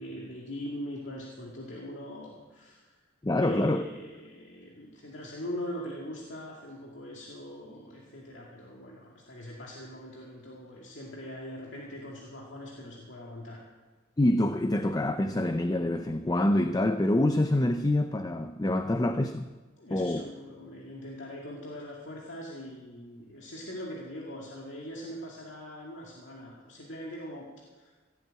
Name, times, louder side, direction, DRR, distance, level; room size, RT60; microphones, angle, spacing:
voice 1, 0.0-2.9 3.4-13.6 19.8-27.5 27.8-27.9, equal, 70° left, 2.3 m, -41 dB
voice 2, 3.2-3.8 14.2-19.5 19.9-20.2, left 1 dB, 20° left, 0.5 m, -26 dB
16.5 x 8.1 x 8.9 m
head